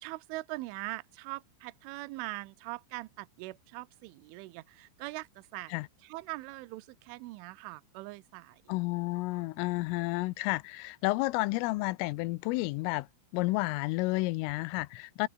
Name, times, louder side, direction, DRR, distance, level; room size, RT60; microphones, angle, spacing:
voice 1, 0.0-5.8 6.0-8.6 9.3-9.4, right 22 dB, 80° right, 3.2 m, -42 dB
voice 2, 8.7-13.1 13.3-15.3, left 22 dB, 90° left, 3.4 m, -31 dB
omnidirectional pair, 5.7 m